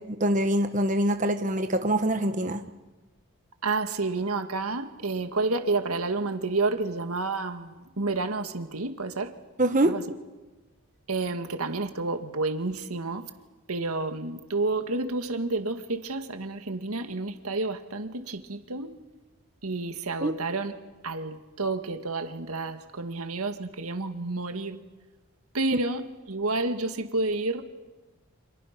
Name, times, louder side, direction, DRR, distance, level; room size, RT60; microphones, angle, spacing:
voice 1, 0.2-2.6 9.6-9.9 20.2-20.3, right 1 dB, 35° right, 7 dB, 1.2 m, -24 dB
voice 2, 3.6-9.3 9.9-10.1 11.1-13.3 13.7-18.9 19.6-20.7 21.0-24.8 25.5-27.6, right 3 dB, 90° right, 7 dB, 1.9 m, -30 dB
30.0 x 27.0 x 6.0 m, 1.2 s
head